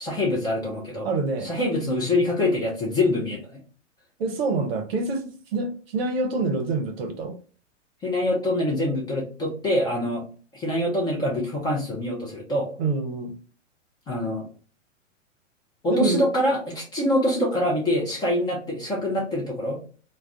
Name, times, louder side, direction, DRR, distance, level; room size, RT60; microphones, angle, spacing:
voice 1, 0.0-1.1 1.4-3.6 8.0-10.2 10.5-12.7 14.1-14.5 15.8-19.8, left 1 dB, 10° left, -4 dB, 0.5 m, -25 dB
voice 2, 1.0-1.5 4.2-5.2 5.5-7.4 12.8-13.3 15.9-16.3, right 3 dB, 50° right, 6 dB, 0.8 m, -26 dB
2.3 x 2.2 x 3.5 m, 0.40 s
figure-of-eight pair, 105°, 38 cm